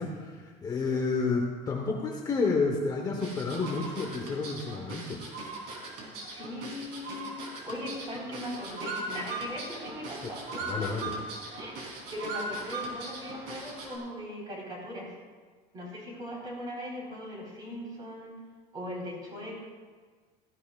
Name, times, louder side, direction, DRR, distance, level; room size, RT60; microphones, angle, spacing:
voice 1, 0.0-5.2 10.2-10.3 10.6-11.2, left 4 dB, 20° left, 0 dB, 1.0 m, -30 dB
sound 1, 3.2-14.0, right 2 dB, 65° right, 3.4 m, -39 dB
voice 2, 6.3-7.3 7.6-10.9 11.6-11.8 12.1-15.1 15.7-18.3 18.7-19.6, left 1 dB, 25° right, -3 dB, 4.2 m, -39 dB
17.5 x 14.5 x 2.4 m, 1.5 s
cardioid pair, 170°, 17 cm